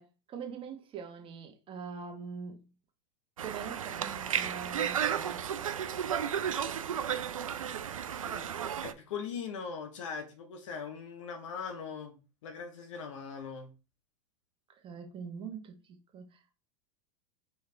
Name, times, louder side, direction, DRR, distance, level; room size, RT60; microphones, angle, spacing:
voice 1, 0.0-2.6 3.4-5.4 14.7-16.5, right 6 dB, 30° right, 1.1 m, -43 dB
Conversation, 3.4-8.9, right 9 dB, 85° right, 0.4 m, -33 dB
voice 2, 8.2-13.7, left 6 dB, 70° left, 0.9 m, -41 dB
4.6 x 3.3 x 3.3 m
hypercardioid pair, 90°, 17 cm